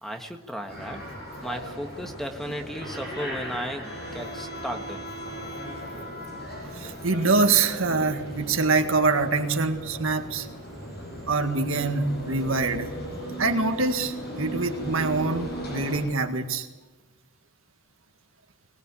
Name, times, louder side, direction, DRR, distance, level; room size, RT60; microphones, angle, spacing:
voice 1, 0.0-1.0 1.4-5.0, equal, ahead, 4 dB, 1.4 m, -35 dB
sound 1, 0.7-16.0, equal, 50° left, 7.9 m, -37 dB
voice 2, 6.7-10.5 11.3-12.9 13.4-16.7, right 3 dB, 70° right, 6 dB, 1.8 m, -25 dB
22.5 x 19.0 x 8.6 m, 1.2 s
head